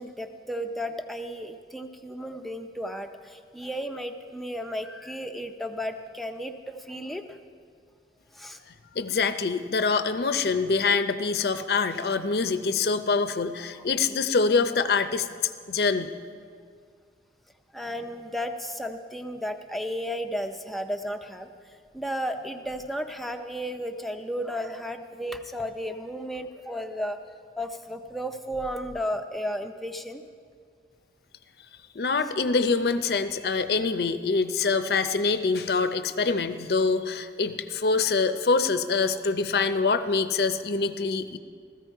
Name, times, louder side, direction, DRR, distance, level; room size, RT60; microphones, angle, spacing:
voice 1, 0.0-7.4 8.3-8.6 13.8-13.9 17.7-21.5 21.9-27.2 27.6-30.2, equal, ahead, 5 dB, 0.5 m, -34 dB
voice 2, 9.0-15.3 15.7-16.1 32.0-41.4, left 4 dB, 65° left, 10 dB, 0.5 m, -25 dB
15.5 x 14.0 x 4.5 m, 2.1 s
head